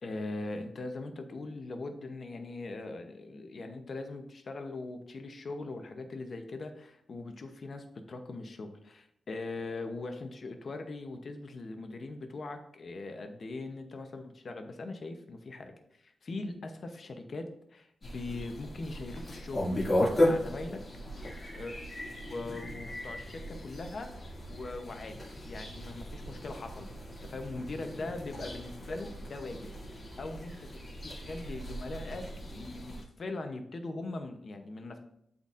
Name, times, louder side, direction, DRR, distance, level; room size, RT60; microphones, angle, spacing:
voice 1, 0.0-19.8 20.1-20.8 21.5-21.8 22.3-25.2 25.5-26.9 27.2-29.7 30.2-30.5 31.0-32.2 32.5-35.0, left 2 dB, 40° left, 5 dB, 0.7 m, -41 dB
sound 1, 18.0-33.0, left 1 dB, 20° left, 2.2 m, -36 dB
12.0 x 4.1 x 2.5 m, 0.74 s
wide cardioid pair, 165°, 0 cm